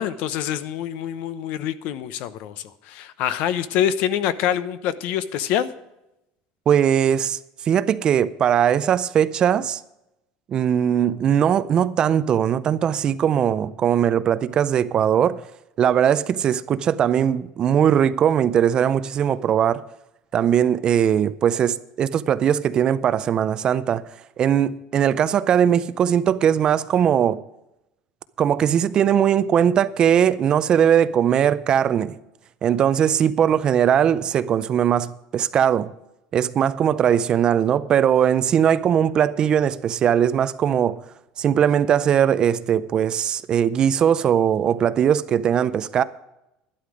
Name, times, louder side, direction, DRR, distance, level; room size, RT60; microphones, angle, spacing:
voice 1, 0.0-5.7, left 10 dB, 55° left, 0.8 m, -25 dB
voice 2, 6.7-7.4 7.7-9.8 10.5-15.4 15.8-19.8 20.3-24.0 24.4-27.4 28.4-32.2 32.6-35.9 36.3-41.0 41.4-46.0, right 9 dB, 30° right, 0.4 m, -20 dB
11.5 x 11.5 x 4.9 m
cardioid pair, 165°, 3 cm